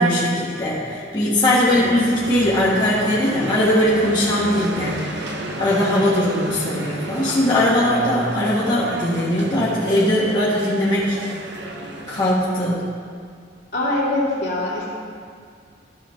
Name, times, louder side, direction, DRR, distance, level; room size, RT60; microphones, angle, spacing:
voice 1, 0.0-5.0 5.6-11.2 12.1-12.8, left 1 dB, 25° left, -8 dB, 1.5 m, -20 dB
sound 1, 1.5-12.3, right 1 dB, 65° right, 1.2 m, -32 dB
voice 2, 1.6-2.0 13.7-14.9, left 1 dB, 60° left, -6 dB, 2.5 m, -23 dB
13.0 x 7.0 x 3.6 m, 2.2 s
head